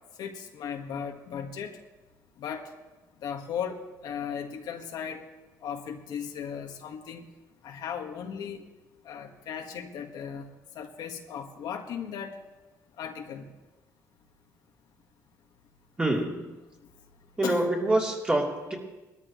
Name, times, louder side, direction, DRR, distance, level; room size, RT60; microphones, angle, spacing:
voice 1, 0.2-1.8 2.4-2.7 3.2-5.3 5.6-7.3 7.6-8.6 9.0-12.4 13.0-13.5 16.8-16.9 17.4-17.6, left 7 dB, 75° left, 3 dB, 1.6 m, -37 dB
voice 2, 16.0-16.5 17.4-18.7, right 1 dB, 15° right, -2 dB, 3.1 m, -26 dB
21.5 x 13.5 x 3.1 m, 1.1 s
cardioid pair, 120°, 7 cm